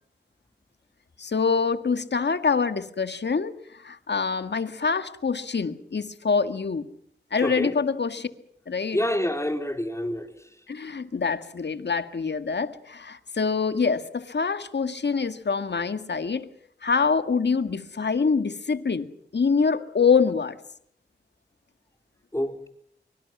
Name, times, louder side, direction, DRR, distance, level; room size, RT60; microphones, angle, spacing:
voice 1, 1.2-6.9 7.3-8.3 8.7-9.0 10.7-16.5 16.8-19.1 19.3-20.6, left 5 dB, 65° left, 1.9 m, -25 dB
voice 2, 7.4-7.7 8.9-10.3 22.3-22.7, left 1 dB, 15° left, 4.3 m, -27 dB
24.5 x 24.0 x 6.2 m
cardioid pair, 50°, 19 cm